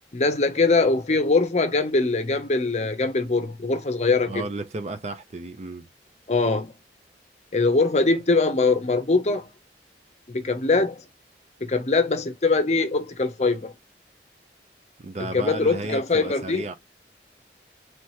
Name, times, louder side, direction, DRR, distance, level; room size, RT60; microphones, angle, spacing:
voice 1, 0.1-4.4 6.3-6.7 7.5-9.5 10.3-11.0 11.6-13.7 15.3-16.6, left 3 dB, 40° left, 0.6 m, -22 dB
voice 2, 4.2-5.9 15.0-16.7, right 2 dB, 40° right, 0.5 m, -33 dB
3.2 x 2.9 x 4.6 m
head